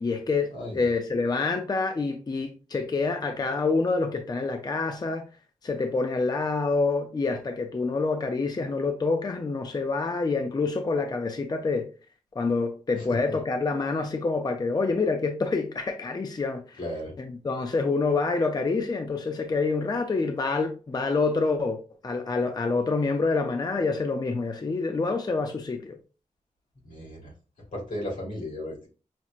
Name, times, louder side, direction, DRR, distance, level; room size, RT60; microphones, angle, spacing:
voice 1, 0.0-5.2 5.6-11.9 12.4-16.8 17.2-26.0, left 3 dB, 30° left, 0.4 m, -27 dB
voice 2, 12.9-13.4 16.8-17.1 26.8-27.3 27.7-28.9, left 1 dB, 85° left, 1.8 m, -35 dB
5.7 x 2.0 x 2.4 m
wide cardioid pair, 115°, 13 cm